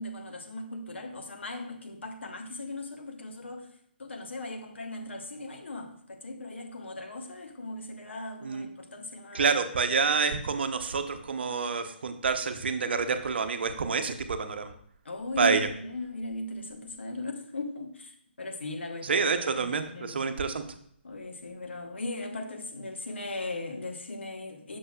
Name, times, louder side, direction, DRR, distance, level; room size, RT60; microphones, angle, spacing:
voice 1, 0.0-3.7 4.0-9.5 15.0-19.2 19.5-20.2 21.0-24.8, left 2 dB, 80° left, 4 dB, 1.1 m, -38 dB
voice 2, 9.3-14.7 15.4-15.7 19.0-20.6, right 5 dB, 65° right, 8 dB, 0.8 m, -28 dB
7.4 x 6.6 x 2.3 m, 0.66 s
figure-of-eight pair, 140°, 6 cm